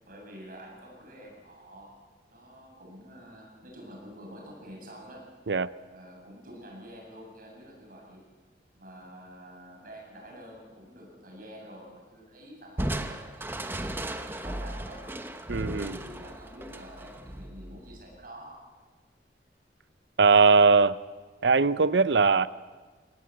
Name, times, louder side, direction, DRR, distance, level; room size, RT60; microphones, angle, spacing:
voice 1, 0.0-2.0 2.3-5.3 5.9-8.3 8.7-15.0 15.7-18.6, equal, 55° right, -1 dB, 7.9 m, -48 dB
Crushing, 12.8-18.2, right 1 dB, 15° right, 1.0 m, -36 dB
voice 2, 15.5-16.0 20.2-21.0 21.4-22.5, right 4 dB, 75° right, 16 dB, 0.7 m, -20 dB
24.0 x 18.0 x 7.8 m, 1.4 s
head